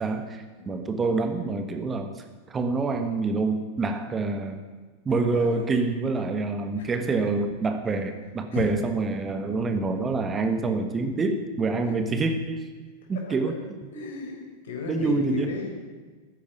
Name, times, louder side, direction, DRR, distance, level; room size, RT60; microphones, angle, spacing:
voice 1, 0.0-4.6 5.0-12.7 13.1-13.8 14.9-15.6, right 3 dB, 20° right, 7 dB, 1.4 m, -27 dB
voice 2, 5.2-5.6 6.8-6.9 8.5-8.6 11.8-12.0 13.9-14.4 14.6-15.7, left 4 dB, 60° left, 1 dB, 4.7 m, -35 dB
14.0 x 10.5 x 9.0 m, 1.4 s
figure-of-eight pair, 90°, 0 cm